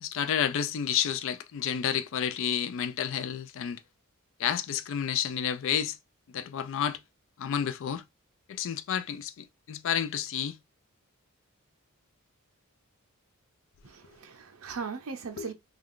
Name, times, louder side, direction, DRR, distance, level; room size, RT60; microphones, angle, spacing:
voice 1, 0.0-3.8 4.4-6.0 6.3-7.0 7.4-8.0 8.5-10.6 15.4-15.5, left 9 dB, 60° left, 0.3 m, -30 dB
voice 2, 13.8-15.5, right 5 dB, 75° right, 0.6 m, -38 dB
2.4 x 2.3 x 3.5 m
head